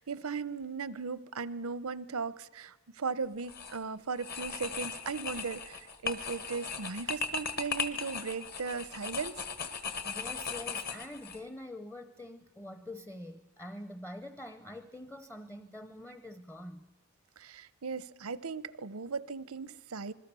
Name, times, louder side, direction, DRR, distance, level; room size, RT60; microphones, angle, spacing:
voice 1, 0.0-9.4 17.4-20.1, right 5 dB, 90° right, 0.8 m, -37 dB
sound 1, 3.4-3.8 4.2-11.4, left 5 dB, 45° left, 1.6 m, -38 dB
voice 2, 10.0-16.9, left 1 dB, 10° left, 0.7 m, -45 dB
26.5 x 21.0 x 6.9 m
head